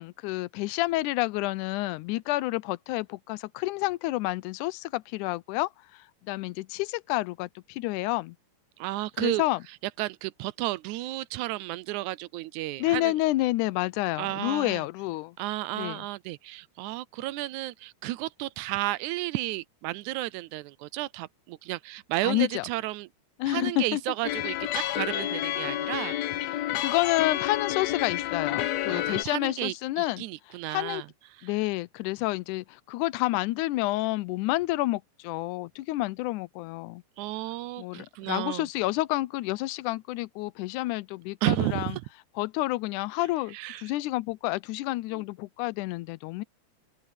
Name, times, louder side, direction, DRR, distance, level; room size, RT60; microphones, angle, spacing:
voice 1, 0.0-8.4 9.2-9.6 12.8-15.4 15.7-16.1 22.2-22.7 23.4-24.0 26.8-30.3 30.7-31.0 31.4-37.0 37.8-41.9 42.4-43.6 43.8-46.4, left 18 dB, 90° left, 2.1 m, -29 dB
voice 2, 8.8-9.4 10.0-13.2 14.2-14.8 15.4-23.1 23.5-26.1 28.9-31.1 31.4-31.5 37.2-38.7 41.4-42.0 43.5-43.9 45.1-45.2, right 17 dB, 85° right, 2.0 m, -32 dB
sound 1, 24.2-29.2, left 13 dB, 70° left, 1.9 m, -30 dB
open air
omnidirectional pair, 3.4 m